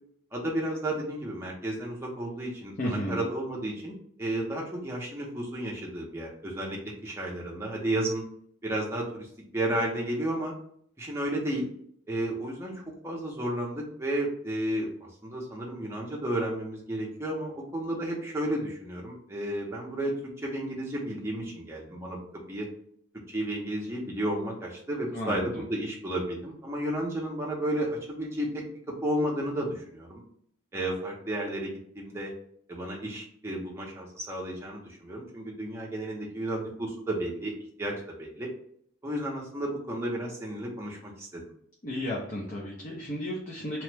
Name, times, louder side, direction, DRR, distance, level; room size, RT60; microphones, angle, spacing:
voice 1, 0.3-8.2 8.6-10.5 11.0-11.7 12.1-14.9 15.2-20.1 20.4-22.7 23.3-30.2 30.7-32.3 32.7-37.5 37.8-37.9 38.2-38.5 39.0-41.4, right 1 dB, 10° right, -3 dB, 0.6 m, -32 dB
voice 2, 2.8-3.2 25.1-25.6 41.8-43.8, left 1 dB, 40° left, -4 dB, 0.5 m, -33 dB
2.9 x 2.1 x 3.2 m, 0.66 s
head